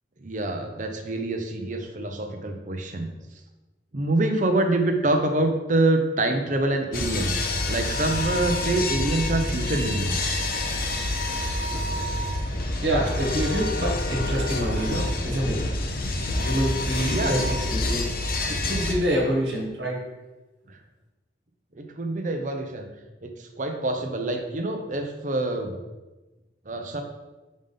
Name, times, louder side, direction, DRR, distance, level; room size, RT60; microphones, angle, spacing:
voice 1, 0.2-3.1 3.9-10.3 17.1-17.4 20.7-20.8 21.7-22.9 23.2-25.8 26.7-27.0, right 2 dB, 45° right, 4 dB, 0.7 m, -26 dB
sound 1, 6.9-18.9, left 2 dB, 50° left, 0.7 m, -27 dB
voice 2, 12.8-15.6 16.4-18.2 18.5-20.0, right 1 dB, 65° right, -1 dB, 1.7 m, -27 dB
5.2 x 3.6 x 5.5 m, 1.1 s
head